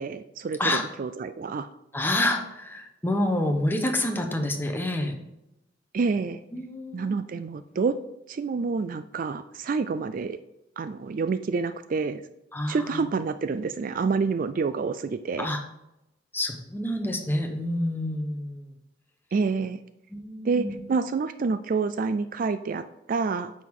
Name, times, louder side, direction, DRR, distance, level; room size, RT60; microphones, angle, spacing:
voice 1, 0.0-1.7 5.9-6.4 6.9-7.9 8.3-10.4 10.8-12.2 12.7-15.5 19.3-19.8 20.4-23.5, right 4 dB, 45° right, 12 dB, 0.3 m, -28 dB
voice 2, 1.9-5.2 6.5-7.2 12.5-13.1 15.4-15.6 16.3-18.7 20.1-20.7, left 1 dB, 10° left, 3 dB, 1.0 m, -28 dB
9.2 x 6.3 x 3.7 m, 0.89 s
head